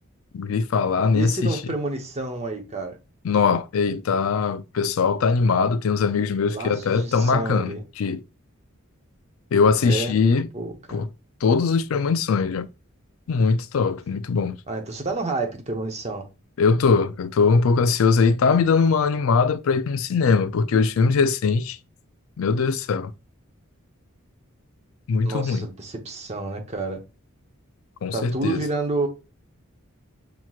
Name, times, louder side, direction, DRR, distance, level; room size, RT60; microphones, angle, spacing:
voice 1, 0.3-1.6 3.2-8.2 9.5-10.5 10.9-11.1 11.4-12.7 13.3-14.6 16.6-21.8 22.4-23.1 25.1-25.7 28.0-28.6, left 5 dB, 75° left, 0.4 m, -21 dB
voice 2, 1.1-3.0 6.5-7.8 9.8-10.1 10.5-11.0 14.7-16.3 25.2-27.0 28.1-29.1, right 3 dB, 30° right, 0.9 m, -29 dB
5.8 x 2.9 x 2.4 m
head